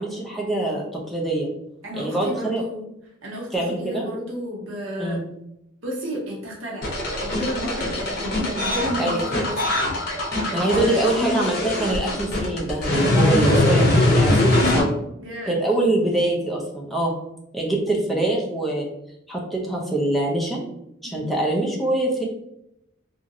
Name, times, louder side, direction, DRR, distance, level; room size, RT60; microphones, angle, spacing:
voice 1, 0.0-1.5 2.0-2.6 3.5-4.1 5.0-5.2 9.0-9.2 10.5-14.9 15.5-17.1 17.5-18.9 19.3-20.6 21.0-22.2, right 1 dB, ahead, -2 dB, 0.4 m, -24 dB
voice 2, 1.8-2.9 3.2-5.2 5.8-6.9 7.2-9.7 10.7-11.6 13.4-13.8 15.2-15.6 21.0-21.3, equal, 75° right, -3 dB, 0.7 m, -31 dB
sound 1, 6.8-14.8, left 1 dB, 50° left, 0.8 m, -22 dB
2.9 x 2.5 x 2.6 m, 0.82 s
head